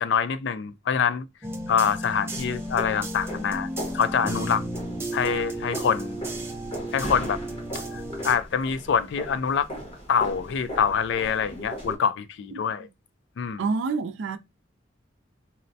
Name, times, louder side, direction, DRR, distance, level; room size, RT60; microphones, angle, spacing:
voice 1, 0.0-1.3 1.7-3.7 3.9-4.6 5.1-6.2 6.9-7.4 7.7-9.7 10.1-12.9 13.4-13.6, left 7 dB, 65° left, 0.3 m, -25 dB
sound 1, 1.4-8.3, right 1 dB, 15° right, 0.5 m, -33 dB
sound 2, 2.3-12.0, equal, 30° left, 1.1 m, -38 dB
voice 2, 13.6-14.4, right 4 dB, 80° right, 0.4 m, -27 dB
4.1 x 2.0 x 2.6 m
head